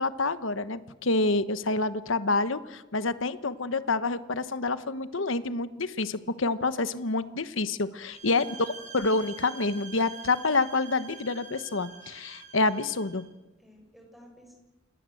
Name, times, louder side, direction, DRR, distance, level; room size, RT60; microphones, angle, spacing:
voice 1, 0.0-8.5 8.9-13.3, left 3 dB, 70° left, 13 dB, 1.2 m, -28 dB
sound 1, 8.0-13.3, right 6 dB, 40° right, 5.7 m, -46 dB
voice 2, 8.4-9.2 13.6-14.6, equal, ahead, 2 dB, 6.6 m, -55 dB
28.5 x 20.0 x 7.9 m, 1.1 s
head